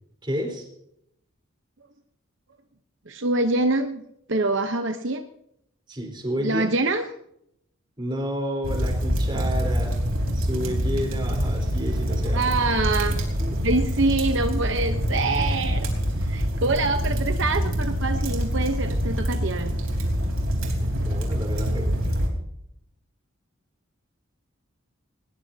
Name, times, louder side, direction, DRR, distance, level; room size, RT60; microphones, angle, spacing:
voice 1, 0.2-0.7 5.9-6.7 8.0-10.0 10.3-12.4 13.4-13.6 20.8-22.2, equal, 25° right, 2 dB, 3.9 m, -31 dB
voice 2, 3.1-4.0 4.3-5.2 6.4-7.0 12.0-13.2 13.6-15.9 16.2-19.8, right 2 dB, 60° right, 7 dB, 0.9 m, -25 dB
sound 1, 8.6-22.3, equal, 85° right, 3.7 m, -25 dB
20.0 x 18.5 x 2.8 m, 0.75 s
head